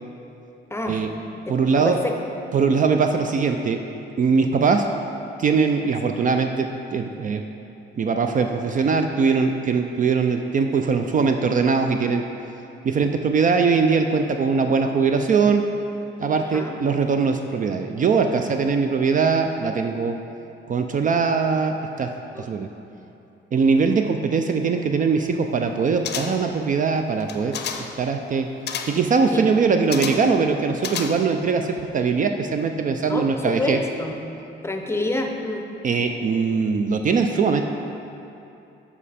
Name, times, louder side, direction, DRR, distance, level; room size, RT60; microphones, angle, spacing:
voice 1, 0.7-1.0 1.5-1.6 1.8-2.1 16.4-16.8 22.3-22.4 29.3-29.5 33.1-34.2 34.6-35.6, left 2 dB, 10° left, 3 dB, 0.6 m, -27 dB
voice 2, 1.5-2.0 2.5-3.8 4.2-4.9 5.4-7.4 8.0-12.2 12.8-15.6 16.2-20.2 20.7-22.1 22.4-22.7 23.5-27.6 28.0-28.5 28.9-33.8 35.8-37.6, right 5 dB, 40° right, 5 dB, 0.4 m, -21 dB
sound 1, 26.0-26.6 27.2-28.0 28.7-29.1 29.9-30.4 30.8-31.5 31.8-31.9, left 7 dB, 55° left, 0.6 m, -31 dB
7.1 x 5.5 x 4.2 m, 2.8 s
cardioid pair, 90°, 20 cm